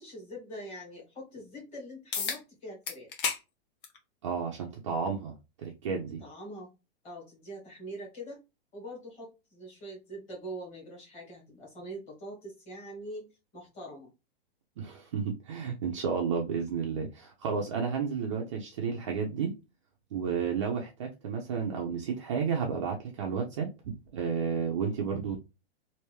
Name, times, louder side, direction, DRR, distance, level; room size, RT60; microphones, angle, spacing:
voice 1, 0.0-3.2 6.2-6.7 7.0-8.4 8.7-13.3 13.5-14.1, right 1 dB, 20° left, 1.8 m, -43 dB
sound 1, 2.1-2.4 2.9-3.4 3.8-4.0 5.1-5.2 10.1-10.2, left 6 dB, 55° left, 1.1 m, -32 dB
voice 2, 4.2-6.2 14.8-19.5 20.1-23.7 24.1-25.4, right 6 dB, 30° right, 0.5 m, -32 dB
3.3 x 2.6 x 3.1 m
supercardioid pair, 175°, 32 cm